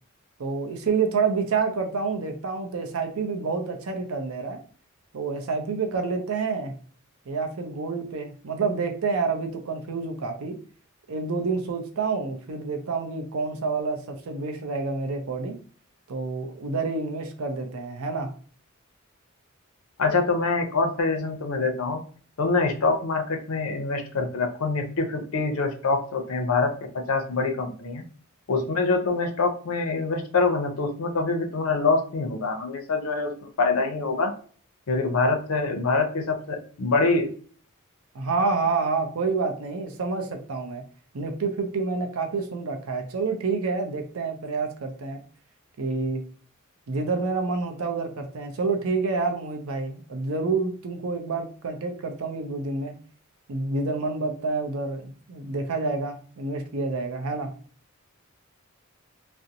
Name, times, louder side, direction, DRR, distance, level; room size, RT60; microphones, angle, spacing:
voice 1, 0.4-4.6 5.1-6.7 7.3-10.5 11.1-15.6 16.1-18.3 38.1-40.8 41.1-45.2 45.8-46.2 46.9-52.9 53.5-57.5, right 4 dB, 75° right, 5 dB, 0.5 m, -28 dB
voice 2, 20.0-22.0 22.4-26.7 27.1-28.0 28.5-34.3 34.9-37.3, left 3 dB, 80° left, 5 dB, 0.5 m, -25 dB
2.5 x 2.0 x 2.7 m, 0.43 s
head